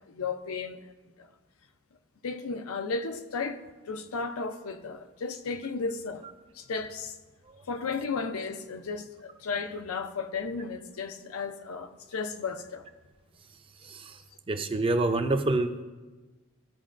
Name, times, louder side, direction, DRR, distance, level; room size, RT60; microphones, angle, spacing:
voice 1, 0.1-0.9 1.2-1.3 2.2-3.6 3.9-6.2 6.5-7.2 7.7-12.9, left 4 dB, 85° left, 0.6 m, -34 dB
voice 2, 13.8-14.2 14.5-15.8, right 2 dB, 25° right, 0.5 m, -27 dB
15.0 x 5.3 x 2.5 m
head